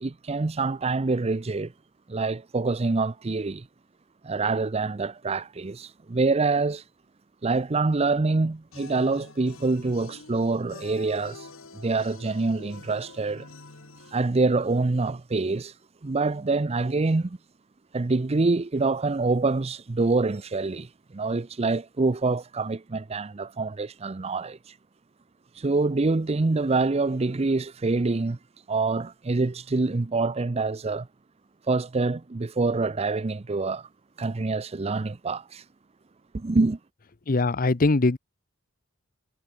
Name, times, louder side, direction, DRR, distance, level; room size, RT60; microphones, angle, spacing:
voice 1, 0.0-1.7 2.1-3.6 4.2-6.8 7.4-11.4 11.7-13.5 14.1-15.7 16.0-17.4 17.9-20.9 21.1-24.6 25.6-28.4 28.7-31.1 31.7-33.9 34.2-35.6 36.3-36.8, right 3 dB, 30° right, 0.5 m, -26 dB
sound 1, 8.7-14.1, left 3 dB, 75° left, 2.1 m, -46 dB
voice 2, 37.3-38.2, left 3 dB, 40° left, 0.8 m, -21 dB
head